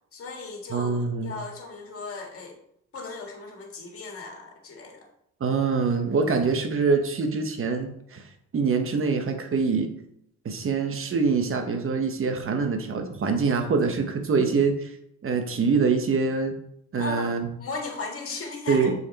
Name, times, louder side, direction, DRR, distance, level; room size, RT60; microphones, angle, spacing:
voice 1, 0.1-2.6 2.9-5.1 17.0-17.3 17.6-18.9, left 3 dB, 50° left, 1 dB, 1.9 m, -36 dB
voice 2, 0.7-1.3 5.4-8.3 8.5-9.9 10.4-14.9 15.2-16.6 16.9-17.5 18.7-18.9, right 4 dB, 45° right, 5 dB, 1.2 m, -24 dB
7.2 x 4.4 x 4.1 m, 0.75 s
cardioid pair, 90°, 30 cm